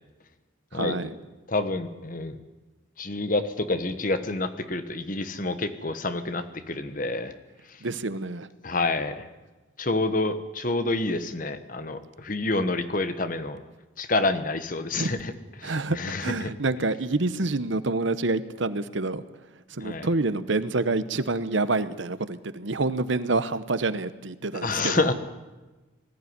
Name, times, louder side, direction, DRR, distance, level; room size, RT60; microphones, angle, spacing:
voice 1, 0.7-1.2 7.8-8.5 14.9-15.1 15.6-19.2 19.7-25.1, right 3 dB, 70° right, 13 dB, 1.0 m, -27 dB
voice 2, 1.5-2.4 3.0-7.3 8.6-9.3 9.8-13.6 14.0-15.3 15.6-16.5 19.8-20.1 24.6-25.1, left 2 dB, 40° left, 10 dB, 1.3 m, -28 dB
20.0 x 14.0 x 9.6 m, 1.1 s
head